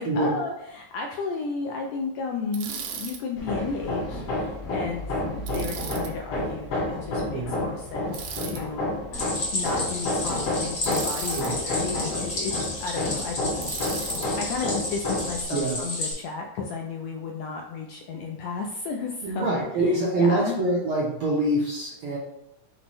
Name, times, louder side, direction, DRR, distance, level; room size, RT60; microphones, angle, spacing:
voice 1, 0.0-8.9 9.5-13.6 14.4-20.6, left 4 dB, 80° left, 1 dB, 1.5 m, -33 dB
Bicycle, 2.5-3.2 5.5-6.1 8.1-8.6 10.8-11.5 13.6-14.3, right 7 dB, 85° right, 2.1 m, -36 dB
Hammer, 3.4-15.4, left 1 dB, 60° left, 1.8 m, -30 dB
Stream, 9.1-16.1, left 2 dB, 40° left, 1.1 m, -32 dB
voice 2, 19.2-22.2, right 2 dB, 70° right, -5 dB, 1.3 m, -25 dB
6.0 x 2.1 x 4.1 m, 0.82 s
omnidirectional pair, 3.4 m